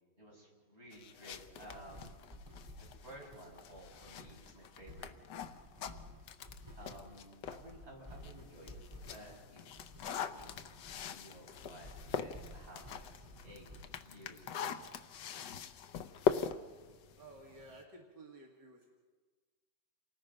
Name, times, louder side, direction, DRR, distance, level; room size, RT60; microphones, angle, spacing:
voice 1, 0.2-2.2 2.8-5.6 6.8-8.8 9.1-9.7 9.9-10.6 11.0-13.0 13.4-13.7 14.0-15.3, right 1 dB, 35° right, -2 dB, 6.0 m, -54 dB
sound 1, 0.9-7.7 8.1-17.8, left 7 dB, 85° left, 1.5 m, -42 dB
sound 2, 1.3-13.8, left 1 dB, 20° right, 5.6 m, -54 dB
voice 2, 17.2-18.9, right 2 dB, 80° right, -1 dB, 2.8 m, -54 dB
28.5 x 19.0 x 5.3 m, 1.4 s
omnidirectional pair, 1.8 m